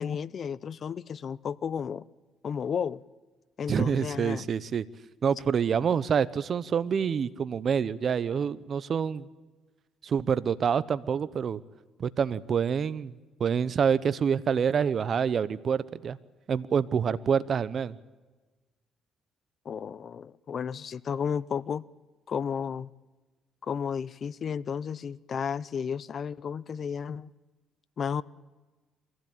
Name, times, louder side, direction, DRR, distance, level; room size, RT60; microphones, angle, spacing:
voice 1, 0.0-2.1 2.4-3.0 3.6-4.5 19.6-21.9 22.3-22.9 23.6-27.3 28.0-28.2, left 7 dB, 50° left, 0.6 m, -33 dB
voice 2, 3.7-4.8 5.2-9.3 10.0-11.6 12.0-16.2 16.5-18.0, right 7 dB, 50° right, 0.8 m, -27 dB
24.0 x 15.5 x 8.7 m
supercardioid pair, 75°, 0 cm